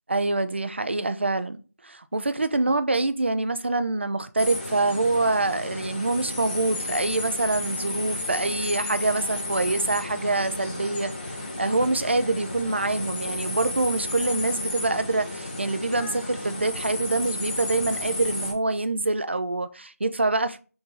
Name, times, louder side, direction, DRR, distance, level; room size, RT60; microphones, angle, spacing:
voice 1, 0.1-1.6 1.8-11.1 11.6-20.6, right 2 dB, 45° right, 0.3 m, -25 dB
sound 1, 4.4-18.5, left 2 dB, 30° left, 0.8 m, -33 dB
3.8 x 2.6 x 4.4 m
figure-of-eight pair, 175°, 9 cm